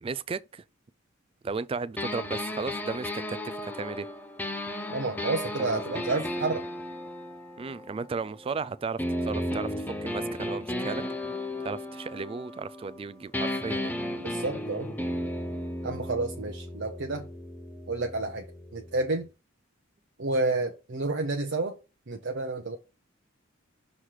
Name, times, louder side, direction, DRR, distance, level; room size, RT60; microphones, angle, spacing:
voice 1, 0.0-0.6 1.4-3.4 3.6-4.1 5.6-6.0 7.6-11.0 11.6-14.0, right 4 dB, 25° right, 0.3 m, -35 dB
sound 1, 2.0-8.5 9.0-13.0 13.3-19.1, left 1 dB, 10° left, 0.7 m, -35 dB
voice 2, 4.9-6.6 14.2-14.9 15.8-17.3 17.9-18.5 18.7-19.3 20.2-21.7 22.1-22.8, right 3 dB, 55° right, 0.8 m, -30 dB
6.3 x 3.1 x 5.7 m
head